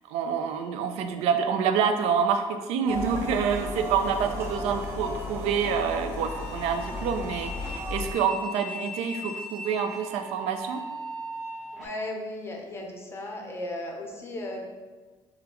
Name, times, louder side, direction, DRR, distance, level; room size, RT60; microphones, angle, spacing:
voice 1, 0.1-10.8, right 6 dB, 85° right, 8 dB, 0.4 m, -27 dB
sound 1, 2.9-8.1, left 1 dB, 25° right, 0.7 m, -35 dB
sound 2, 6.2-11.9, equal, ahead, 1.3 m, -39 dB
voice 2, 11.7-14.6, left 1 dB, 25° left, 1 dB, 0.7 m, -36 dB
5.8 x 2.3 x 3.4 m, 1.3 s
cardioid pair, 125°, 10 cm